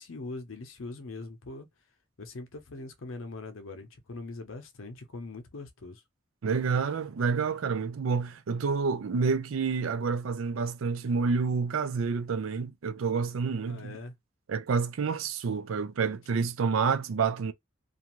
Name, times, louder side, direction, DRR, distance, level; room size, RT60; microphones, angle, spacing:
voice 1, 0.0-1.7 2.2-6.0 13.6-14.1, left 3 dB, 85° left, 0.7 m, -42 dB
voice 2, 6.4-14.0 14.5-17.5, right 5 dB, 85° right, 0.4 m, -28 dB
2.5 x 2.3 x 3.0 m
head